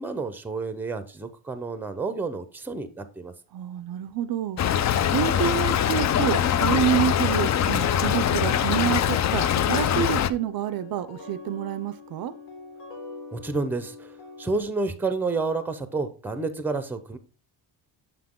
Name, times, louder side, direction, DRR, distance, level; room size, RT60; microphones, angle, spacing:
voice 1, 0.0-3.3 13.3-14.1 14.4-17.2, right 3 dB, 5° right, 0.6 m, -30 dB
voice 2, 3.5-4.9 5.1-12.3, right 11 dB, 55° right, 0.5 m, -28 dB
Stream / Trickle dribble, 4.6-10.3, left 9 dB, 40° left, 0.4 m, -23 dB
sound 1, 7.8-14.6, left 4 dB, 80° left, 2.3 m, -43 dB
6.9 x 5.9 x 3.7 m
cardioid pair, 150°, 43 cm